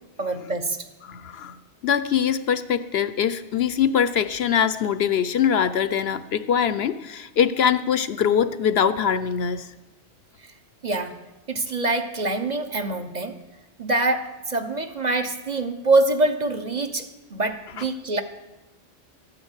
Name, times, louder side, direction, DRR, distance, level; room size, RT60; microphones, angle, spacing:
voice 1, 0.2-0.9 10.4-10.5 10.8-11.2 11.5-13.4 13.8-18.2, right 2 dB, 40° right, 7 dB, 1.1 m, -25 dB
voice 2, 1.0-1.6 1.8-9.7, left 8 dB, 65° left, 13 dB, 0.8 m, -23 dB
13.5 x 9.7 x 8.1 m, 1.1 s
omnidirectional pair, 1.2 m